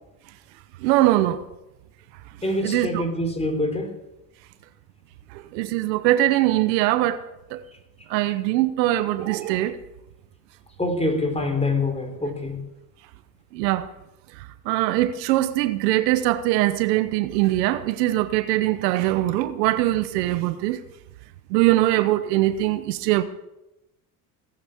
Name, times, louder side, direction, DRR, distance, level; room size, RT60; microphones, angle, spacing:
voice 1, 0.8-1.5 2.6-3.0 5.3-7.2 7.5-7.6 8.1-9.8 13.5-13.9 14.4-20.8 21.5-23.2, right 15 dB, 85° right, 1.0 m, -22 dB
voice 2, 2.4-4.0 10.8-12.6, left 2 dB, 15° left, 3.8 m, -25 dB
18.0 x 8.9 x 7.0 m
supercardioid pair, 85°, 49 cm